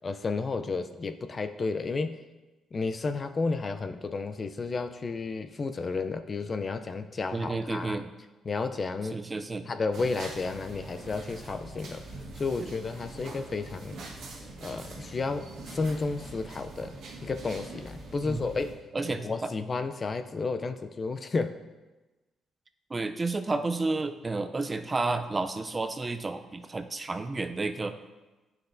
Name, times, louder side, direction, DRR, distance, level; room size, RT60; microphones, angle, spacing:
voice 1, 0.0-2.2 2.7-8.0 8.5-9.2 9.7-12.0 12.4-14.0 14.6-17.0 17.2-21.6, left 4 dB, 35° left, 9 dB, 0.4 m, -32 dB
voice 2, 7.3-8.0 9.1-9.6 12.6-12.7 18.2-18.4 18.9-19.3 22.9-27.9, right 3 dB, 25° right, 9 dB, 0.4 m, -31 dB
sound 1, 9.9-18.7, right 2 dB, 80° right, 1.4 m, -43 dB
9.9 x 5.8 x 2.6 m, 1.2 s
cardioid pair, 90°, 0 cm